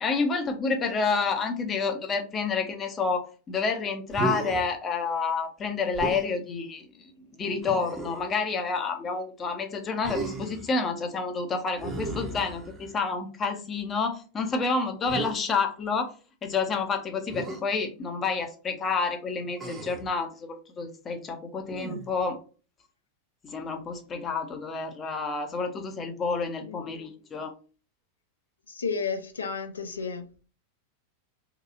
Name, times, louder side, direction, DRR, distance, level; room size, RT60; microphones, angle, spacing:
voice 1, 0.0-6.9 7.4-16.1 16.4-22.4 23.4-27.5, left 4 dB, 25° left, 0.6 m, -29 dB
Human voice, 4.1-4.7 5.9-6.3 7.6-8.3 10.0-10.7 11.8-13.0 15.1-15.3 17.3-17.6 19.6-20.1 21.7-22.2, right 3 dB, 20° right, 0.7 m, -34 dB
voice 2, 28.7-30.2, left 5 dB, 75° left, 0.5 m, -32 dB
2.9 x 2.3 x 2.4 m
figure-of-eight pair, 90°, 0 cm